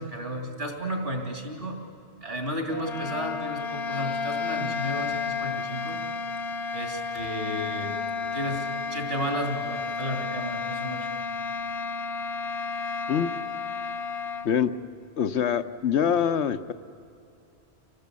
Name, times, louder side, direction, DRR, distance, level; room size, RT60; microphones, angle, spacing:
voice 1, 0.0-1.8 2.2-6.0 6.7-7.9 8.3-11.1, equal, 60° right, 3 dB, 3.3 m, -33 dB
sound 1, 2.7-14.5, left 5 dB, 55° left, 1.0 m, -32 dB
voice 2, 15.2-16.7, left 8 dB, 85° left, 10 dB, 1.1 m, -24 dB
25.5 x 18.5 x 8.4 m, 2.6 s
omnidirectional pair, 1.1 m